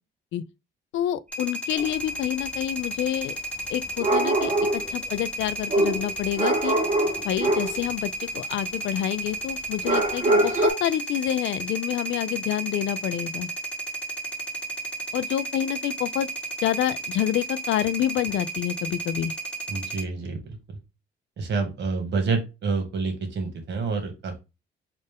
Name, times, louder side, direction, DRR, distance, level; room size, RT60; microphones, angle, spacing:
voice 1, 0.9-3.3 3.7-6.8 7.2-13.5 15.1-16.3 16.6-19.3, left 12 dB, 75° left, 0.4 m, -28 dB
sound 1, 1.3-20.0, right 2 dB, 5° left, 1.4 m, -33 dB
sound 2, 1.8-1.9 4.0-4.9 5.7-7.8 9.8-10.7, right 2 dB, 40° right, 1.3 m, -23 dB
voice 2, 19.7-20.4 20.7-20.8 21.4-24.4, right 4 dB, 60° right, 1.4 m, -28 dB
4.2 x 2.5 x 3.4 m
cardioid pair, 90°, 20 cm